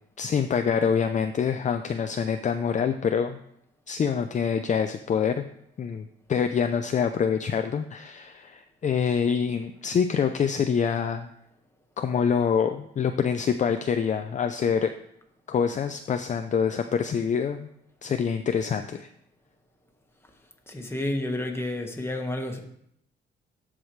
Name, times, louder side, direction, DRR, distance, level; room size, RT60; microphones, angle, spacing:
voice 1, 0.2-3.4 3.9-5.4 5.8-11.3 12.0-14.9 15.5-17.7 18.0-19.1, left 7 dB, 40° left, 7 dB, 0.5 m, -26 dB
voice 2, 20.7-22.6, left 1 dB, 10° left, 3 dB, 1.5 m, -30 dB
13.5 x 4.9 x 3.2 m, 0.73 s
cardioid pair, 90°, 20 cm